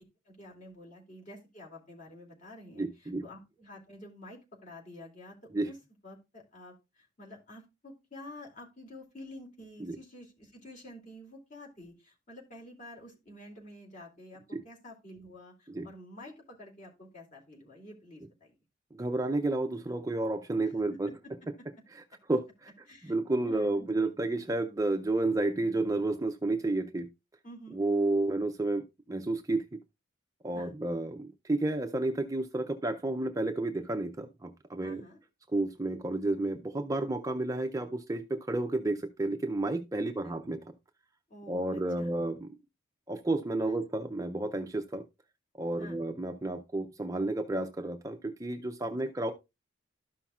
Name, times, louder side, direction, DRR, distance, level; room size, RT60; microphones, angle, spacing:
voice 1, 0.3-5.4 5.6-5.8 6.0-18.6 20.7-20.8 22.9-23.1 23.4-24.1 27.4-27.8 30.5-30.7 34.8-35.2 40.2-40.3 41.3-42.1 45.8-46.0 48.8-48.9, left 1 dB, 40° left, 2.6 m, -49 dB
voice 2, 2.8-3.2 5.5-5.7 9.8-10.0 14.5-14.6 15.7-15.9 19.0-21.1 22.0-22.1 22.3-22.7 23.0-27.1 27.7-29.7 30.4-35.0 35.5-40.6 41.5-42.5 43.1-45.0 45.6-49.3, right 2 dB, 15° right, 0.5 m, -31 dB
13.0 x 5.7 x 2.4 m
head